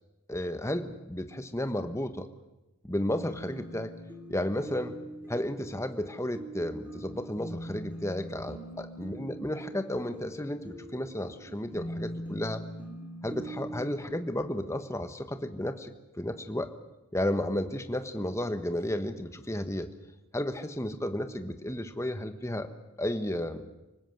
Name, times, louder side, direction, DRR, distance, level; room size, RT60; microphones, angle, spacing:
voice 1, 0.3-2.3 2.8-3.9 4.3-5.0 5.3-12.6 13.2-15.9 16.2-16.7 17.1-19.9 20.3-22.7 23.0-23.6, left 1 dB, 15° left, 8 dB, 1.3 m, -33 dB
sound 1, 3.2-14.0, right 1 dB, 10° right, 3.1 m, -42 dB
25.0 x 19.5 x 7.9 m, 0.99 s
head